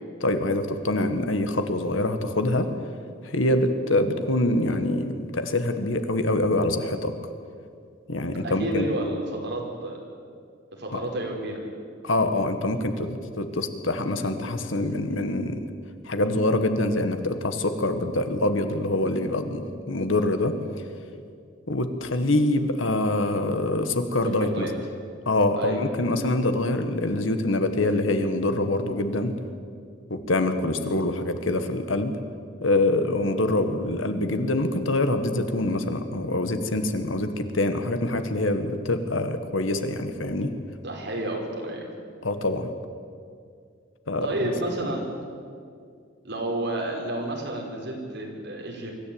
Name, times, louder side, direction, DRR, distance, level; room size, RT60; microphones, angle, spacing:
voice 1, 0.2-2.7 3.2-7.1 8.1-8.9 10.9-11.0 12.0-15.6 16.0-20.5 21.7-24.7 25.2-29.4 30.1-32.2 32.6-40.5 42.2-42.7 44.1-44.5 44.8-44.9, left 2 dB, 85° left, 8 dB, 1.7 m, -25 dB
voice 2, 8.4-10.0 10.8-11.6 24.2-24.7 25.6-25.8 40.8-41.9 44.2-45.0 46.2-48.9, right 1 dB, 60° right, 0 dB, 4.9 m, -30 dB
24.0 x 14.0 x 8.8 m, 2.2 s
head